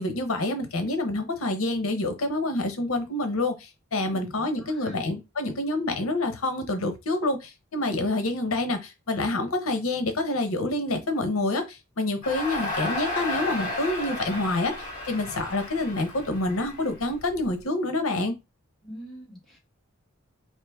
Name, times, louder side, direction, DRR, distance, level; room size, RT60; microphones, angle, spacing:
voice 1, 0.0-14.7 15.1-18.3, left 2 dB, 80° left, 0.9 m, -27 dB
voice 2, 4.0-5.0 18.8-19.6, equal, ahead, 1.9 m, -44 dB
Crowd, 12.2-17.4, left 2 dB, 40° left, 2.5 m, -33 dB
4.9 x 2.6 x 3.4 m
head